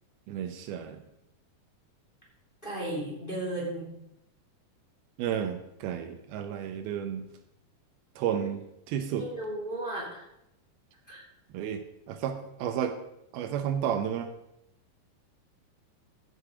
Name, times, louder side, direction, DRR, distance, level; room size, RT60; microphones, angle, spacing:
voice 1, 0.3-1.0 5.2-7.3 8.2-9.3 11.5-11.8 12.1-13.0 13.3-14.3, right 9 dB, 80° right, 8 dB, 2.6 m, -32 dB
voice 2, 2.6-3.9 8.3-8.4 9.1-10.2 11.1-11.2, right 1 dB, 15° left, -3 dB, 2.4 m, -35 dB
14.5 x 6.8 x 4.9 m, 0.83 s
omnidirectional pair, 4.5 m